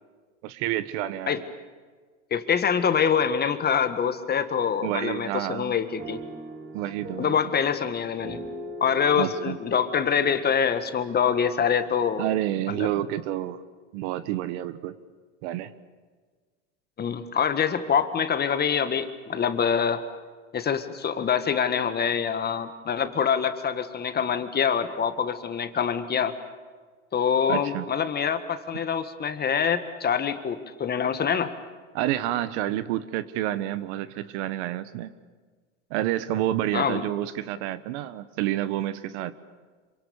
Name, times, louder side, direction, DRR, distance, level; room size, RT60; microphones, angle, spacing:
voice 1, 0.4-1.4 4.8-5.7 6.7-7.4 9.2-9.6 12.2-13.6 13.9-15.0 15.4-15.7 27.5-27.8 31.9-35.1 35.9-39.3, right 13 dB, 60° right, 14 dB, 1.3 m, -29 dB
voice 2, 2.3-6.2 7.2-8.4 8.8-12.3 12.7-12.9 17.0-20.0 20.5-26.3 27.1-31.5 36.7-37.0, left 7 dB, 25° left, 10 dB, 1.7 m, -25 dB
sound 1, 6.0-12.0, right 1 dB, 25° right, 4.0 m, -41 dB
27.0 x 25.0 x 7.1 m, 1.5 s
hypercardioid pair, 105°, 39 cm